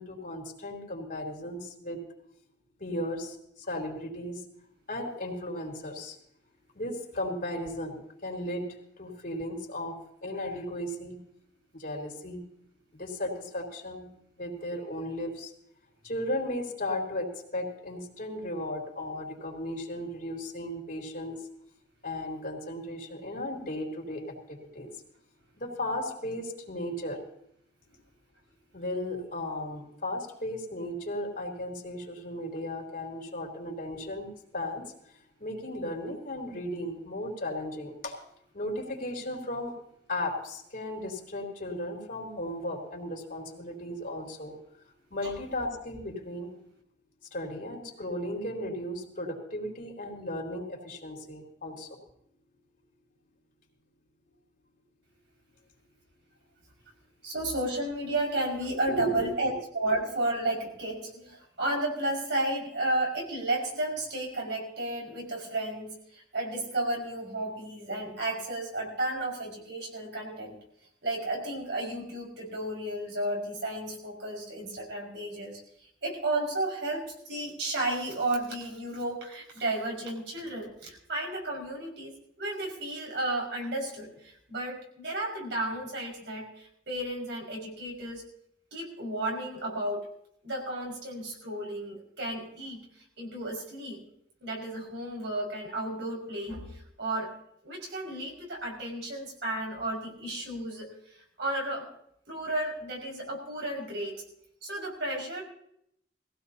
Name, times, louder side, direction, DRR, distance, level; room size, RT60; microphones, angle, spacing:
voice 1, 0.0-2.0 2.8-4.4 4.9-6.2 6.8-8.7 9.0-11.2 11.7-12.4 12.9-14.1 14.4-15.5 16.0-21.4 22.0-24.9 25.6-27.2 28.7-34.3 34.5-34.9 35.4-38.2 38.5-39.7 40.1-44.5 45.1-46.5 47.3-52.0 58.9-59.3, left 1 dB, 50° left, 0 dB, 3.6 m, -35 dB
voice 2, 57.2-70.6 71.0-75.6 76.0-88.2 88.7-90.1 90.4-92.8 93.2-94.0 94.4-97.3 97.6-100.9 101.4-101.9 102.3-104.2 104.6-105.4, right 1 dB, 70° right, -1 dB, 5.6 m, -33 dB
21.0 x 16.0 x 2.8 m, 0.71 s
head